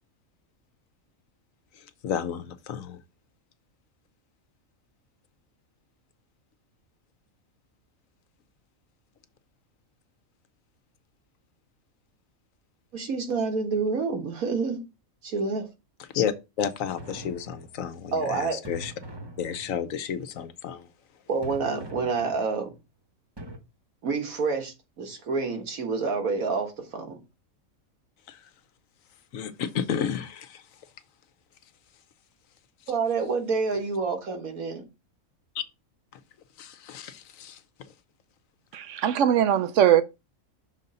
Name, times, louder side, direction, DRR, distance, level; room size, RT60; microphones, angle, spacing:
voice 1, 1.8-3.0 16.1-18.9 19.4-20.9 28.3-28.4 29.3-30.6 35.5-35.6 36.6-37.6, left 8 dB, 75° left, 1.1 m, -32 dB
voice 2, 12.9-14.8 15.2-15.7 18.1-18.6 21.3-22.7 24.0-27.2 32.9-34.9, right 4 dB, 85° right, 1.9 m, -28 dB
sound 1, 16.8-18.0 18.6-20.0 21.4-22.8 23.4-23.6, right 1 dB, 20° right, 0.8 m, -43 dB
voice 3, 38.7-40.0, right 10 dB, 70° right, 0.9 m, -21 dB
6.3 x 3.9 x 5.4 m
omnidirectional pair, 1.4 m